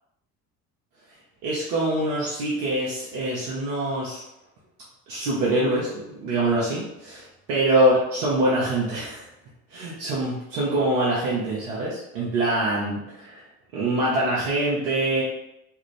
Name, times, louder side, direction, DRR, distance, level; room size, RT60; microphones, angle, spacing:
voice 1, 1.4-4.2 5.1-9.3 9.7-13.5 13.7-15.2, right 1 dB, 80° right, -7 dB, 1.0 m, -24 dB
3.3 x 2.5 x 3.1 m, 0.84 s
hypercardioid pair, 65°, 45 cm